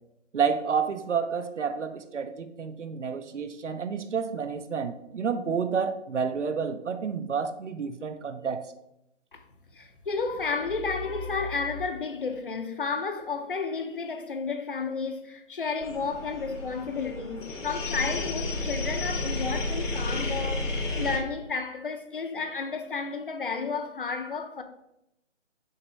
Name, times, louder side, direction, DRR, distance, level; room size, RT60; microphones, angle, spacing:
voice 1, 0.3-8.6, right 6 dB, 70° right, 0.9 m, -30 dB
voice 2, 9.7-24.6, left 4 dB, 45° left, 0.8 m, -32 dB
sound 1, 15.8-21.2, left 2 dB, 80° left, 2.2 m, -32 dB
6.6 x 3.1 x 5.5 m
hypercardioid pair, 170°, 37 cm